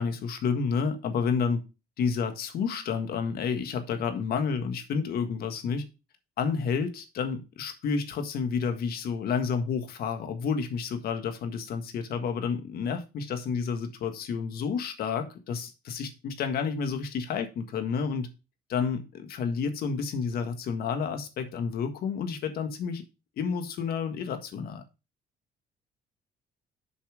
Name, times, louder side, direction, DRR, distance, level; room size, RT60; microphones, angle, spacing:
voice 1, 0.0-1.6 2.0-5.8 6.4-18.3 18.7-23.0 23.4-24.8, left 6 dB, 65° left, 1.6 m, -30 dB
7.2 x 5.6 x 5.0 m
cardioid pair, 110°, 17 cm